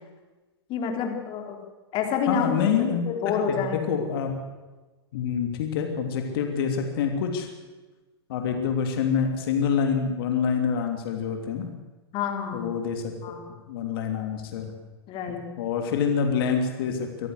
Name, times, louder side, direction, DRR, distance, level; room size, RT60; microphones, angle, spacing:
voice 1, 0.7-1.6 1.9-2.7 3.1-3.8 12.1-12.7 13.2-13.4 15.1-15.5, left 6 dB, 35° left, 4 dB, 4.1 m, -28 dB
voice 2, 2.3-3.0 3.5-4.3 5.1-7.5 8.3-11.8 12.5-14.7 15.6-17.3, left 7 dB, 60° left, 4 dB, 3.2 m, -26 dB
24.5 x 14.5 x 8.1 m, 1.2 s
hypercardioid pair, 110°, 14 cm